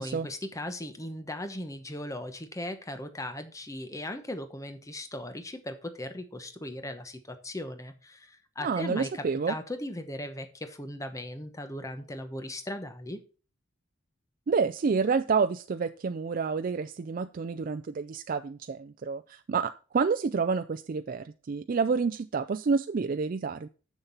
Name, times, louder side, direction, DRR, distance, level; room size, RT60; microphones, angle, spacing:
voice 1, 0.0-13.2, left 1 dB, 15° left, 8 dB, 1.0 m, -38 dB
voice 2, 8.6-9.5 14.5-23.7, right 5 dB, 45° right, 9 dB, 0.4 m, -29 dB
7.3 x 6.7 x 5.5 m, 0.36 s
head